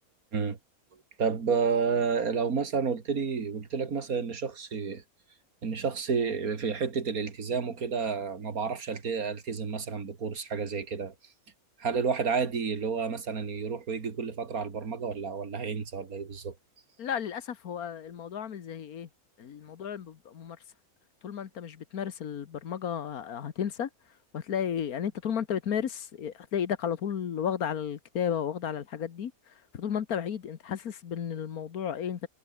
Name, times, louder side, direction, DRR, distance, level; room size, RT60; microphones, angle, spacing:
voice 1, 1.2-5.0 5.6-11.1 11.8-16.5, right 5 dB, 80° right, 2.6 m, -30 dB
voice 2, 17.0-19.1 19.4-20.6 21.2-23.9 24.3-32.3, left 8 dB, 90° left, 1.7 m, -33 dB
omnidirectional pair, 1.5 m